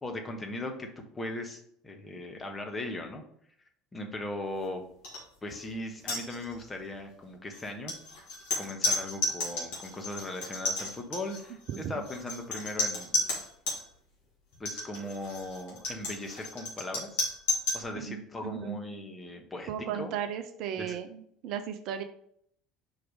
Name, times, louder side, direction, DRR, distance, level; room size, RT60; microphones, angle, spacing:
voice 1, 0.0-3.2 3.9-4.8 5.4-7.9 8.6-13.1 14.6-17.2 17.7-20.1 20.8-20.9, left 1 dB, 20° left, 3 dB, 1.3 m, -38 dB
sound 1, 5.0-5.2 5.5-5.7 6.0-6.7 7.5-13.8 14.5-17.8, left 2 dB, 60° left, 2.3 m, -33 dB
voice 2, 11.7-12.0 17.9-18.8 19.7-22.0, right 9 dB, 50° right, 8 dB, 0.5 m, -36 dB
4.7 x 4.7 x 5.0 m, 0.68 s
figure-of-eight pair, 65°, 0 cm